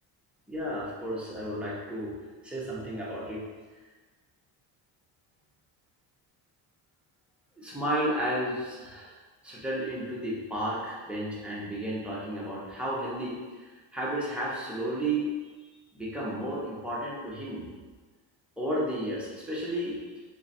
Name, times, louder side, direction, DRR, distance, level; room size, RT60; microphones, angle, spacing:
voice 1, 0.5-2.1 2.4-3.4 7.6-9.1 9.4-15.3 15.9-17.7 18.6-20.0, right 1 dB, 5° right, -7 dB, 0.7 m, -32 dB
3.3 x 2.4 x 4.0 m, 1.3 s
cardioid pair, 145°, 43 cm